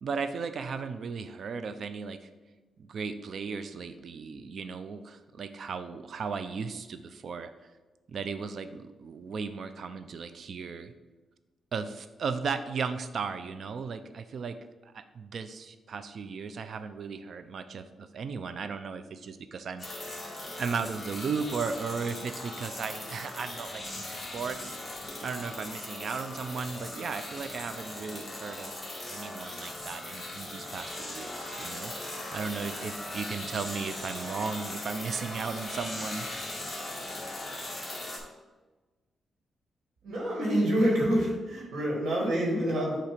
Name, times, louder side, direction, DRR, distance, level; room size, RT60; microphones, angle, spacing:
voice 1, 0.0-2.3 2.8-7.5 8.1-10.9 11.7-14.6 14.8-20.2 20.6-24.8 25.2-28.7 29.1-36.5, right 5 dB, 60° right, 10 dB, 0.5 m, -36 dB
sound 1, 19.8-38.2, left 1 dB, 15° left, 1.6 m, -39 dB
voice 2, 40.0-43.0, equal, 75° right, -2 dB, 2.1 m, -27 dB
8.1 x 2.9 x 5.1 m, 1.2 s
cardioid pair, 100°, 0 cm